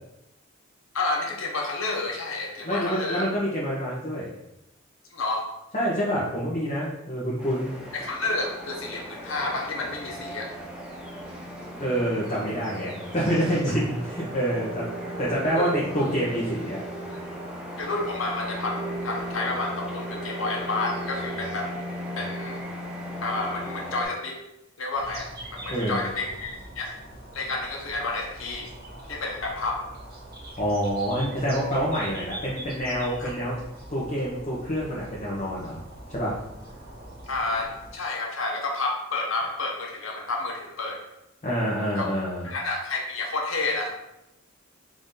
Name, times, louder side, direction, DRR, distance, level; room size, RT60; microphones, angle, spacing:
voice 1, 0.9-3.3 5.1-5.4 7.9-10.5 15.6-15.7 17.8-21.7 22.1-22.6 23.2-24.4 24.8-26.9 27.3-28.7 29.1-29.8 33.2-33.3 37.3-41.0 42.0-42.1 42.4-44.0, left 3 dB, 75° left, 0 dB, 1.0 m, -30 dB
voice 2, 2.6-4.3 5.7-7.7 11.7-14.9 15.2-16.8 25.7-26.0 30.6-33.6 33.9-35.8 36.1-36.3 41.4-42.4, equal, 35° left, -7 dB, 0.9 m, -27 dB
sound 1, 7.4-24.0, equal, 5° right, 0.8 m, -36 dB
sound 2, 24.9-37.9, right 1 dB, 50° right, 1.1 m, -43 dB
4.8 x 2.7 x 3.8 m, 0.89 s
head